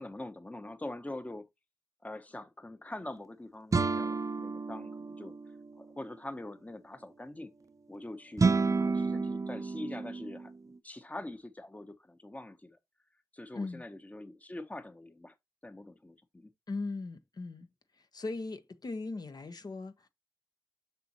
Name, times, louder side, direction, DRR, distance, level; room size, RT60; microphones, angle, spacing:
voice 1, 0.0-1.5 2.0-5.3 5.8-7.5 7.9-12.8 13.3-15.3 15.6-16.5, left 1 dB, 20° left, 0.9 m, -44 dB
sound 1, 3.7-5.7 8.4-10.5, right 4 dB, 45° right, 0.6 m, -30 dB
voice 2, 13.5-13.8 16.7-17.7 18.1-20.1, left 3 dB, 55° left, 1.0 m, -38 dB
6.8 x 6.1 x 2.9 m
cardioid pair, 55°, 8 cm